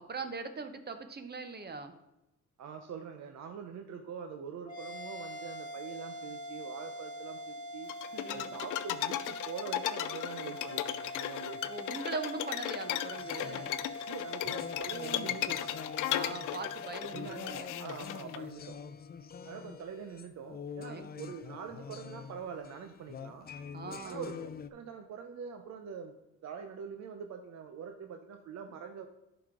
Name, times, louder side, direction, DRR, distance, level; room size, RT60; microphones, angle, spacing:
voice 1, 0.0-2.0 8.1-8.5 11.7-13.8 16.1-17.7 20.8-21.1 23.7-24.2, right 4 dB, 35° right, 8 dB, 0.9 m, -41 dB
voice 2, 2.6-7.9 8.3-11.6 14.1-15.8 17.0-18.8 19.4-23.5 24.0-26.1 26.4-29.1, right 6 dB, 60° right, 6 dB, 0.8 m, -44 dB
sound 1, 4.7-19.3, left 1 dB, 15° left, 1.5 m, -44 dB
sound 2, 7.9-18.4, left 14 dB, 90° left, 0.5 m, -36 dB
sound 3, 13.2-24.7, left 7 dB, 30° left, 0.5 m, -46 dB
11.0 x 4.9 x 3.8 m, 0.89 s
cardioid pair, 90°, 30 cm